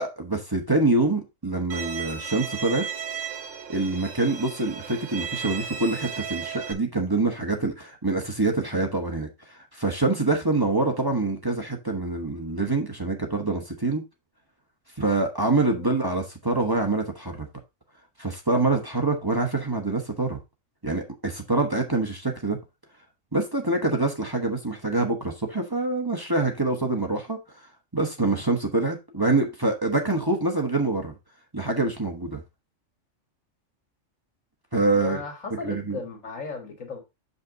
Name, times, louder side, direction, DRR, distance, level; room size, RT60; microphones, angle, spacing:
voice 1, 0.0-2.9 3.7-9.3 9.7-14.0 15.0-17.5 18.2-20.4 20.8-22.6 23.3-27.4 27.9-31.1 31.5-32.4 34.7-35.2 35.6-36.0, right 2 dB, 20° right, 1.1 m, -25 dB
Bowed string instrument, 1.7-6.7, right 6 dB, 85° right, 1.4 m, -35 dB
voice 2, 34.9-37.0, left 4 dB, 90° left, 2.2 m, -36 dB
6.9 x 5.5 x 3.8 m
omnidirectional pair, 1.3 m